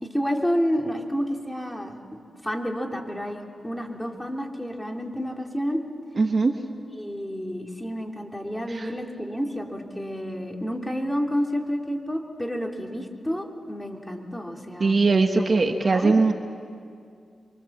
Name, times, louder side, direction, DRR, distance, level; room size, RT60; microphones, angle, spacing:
voice 1, 0.0-5.8 6.9-14.9 15.7-16.1, equal, 5° left, 1 dB, 3.1 m, -30 dB
voice 2, 6.2-6.5 8.7-8.9 14.8-16.3, right 3 dB, 45° right, 5 dB, 1.5 m, -20 dB
27.5 x 23.5 x 7.3 m, 2.3 s
cardioid pair, 80°, 0 cm